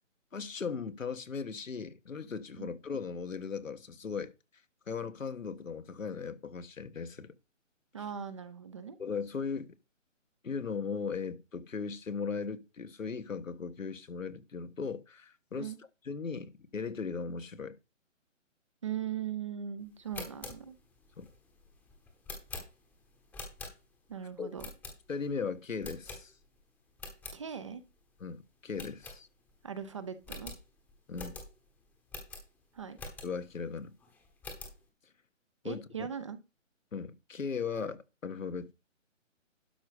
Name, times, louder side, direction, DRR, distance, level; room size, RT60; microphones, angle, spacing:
voice 1, 0.3-4.3 4.9-7.3 9.0-9.7 10.4-15.7 16.0-17.8 21.2-21.3 24.4-24.5 25.1-26.3 28.2-29.3 31.1-31.4 33.2-33.9 35.6-36.1 36.9-38.7, left 5 dB, 80° left, 1.5 m, -38 dB
voice 2, 7.9-9.0 15.6-15.8 18.8-20.8 24.1-24.7 27.3-27.8 29.6-30.5 32.7-33.0 35.6-36.4, right 8 dB, 25° right, 0.6 m, -39 dB
sound 1, 20.0-24.1 24.6-25.3 25.8-26.6 26.9-27.4 27.8-27.9 28.2-28.3 28.7-29.6 29.9-30.0 30.2-33.5 34.0-34.8, left 3 dB, 5° left, 1.0 m, -46 dB
12.0 x 5.3 x 4.9 m
figure-of-eight pair, 155°, 39 cm